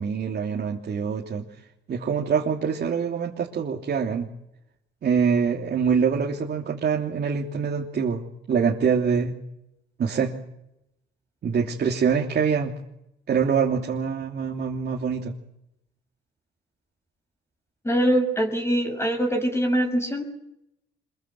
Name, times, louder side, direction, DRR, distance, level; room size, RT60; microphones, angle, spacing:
voice 1, 0.0-1.4 1.9-4.3 5.0-8.2 8.5-9.4 10.0-10.3 11.4-12.7 13.3-15.3, right 6 dB, 55° right, -1 dB, 3.2 m, -24 dB
voice 2, 17.8-20.2, right 1 dB, 15° left, 3 dB, 6.1 m, -23 dB
26.0 x 22.5 x 7.8 m, 0.82 s
cardioid pair, 90°, 20 cm